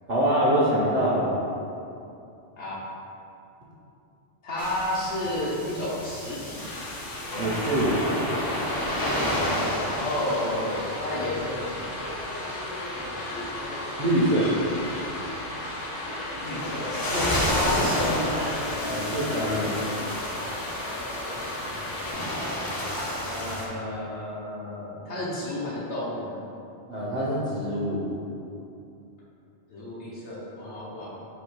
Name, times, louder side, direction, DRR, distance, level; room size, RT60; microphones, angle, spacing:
voice 1, 0.1-1.4 7.4-8.0 14.0-14.6 18.9-19.7 26.9-28.1, right 1 dB, 50° right, -7 dB, 0.7 m, -24 dB
voice 2, 4.4-6.8 9.8-12.0 16.4-18.5 21.0-21.9 23.2-26.4 29.7-31.3, left 1 dB, 75° left, -7 dB, 1.1 m, -32 dB
sound 1, 4.6-23.7, left 1 dB, 35° left, 0.4 m, -32 dB
sound 2, 6.6-22.1, left 1 dB, 55° left, 0.9 m, -34 dB
4.3 x 2.7 x 4.5 m, 2.7 s
omnidirectional pair, 1.2 m